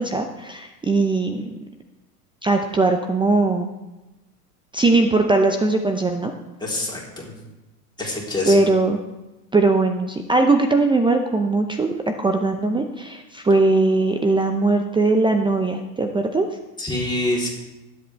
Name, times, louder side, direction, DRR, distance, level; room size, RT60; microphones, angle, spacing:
voice 1, 0.0-1.5 2.4-3.7 4.7-6.3 8.5-9.0 9.5-16.5, right 3 dB, 10° right, 5 dB, 0.6 m, -20 dB
voice 2, 6.6-7.3 8.0-8.6 16.8-17.5, left 1 dB, 10° left, -4 dB, 3.6 m, -26 dB
20.0 x 8.0 x 3.4 m, 1.0 s
hypercardioid pair, 100°, 46 cm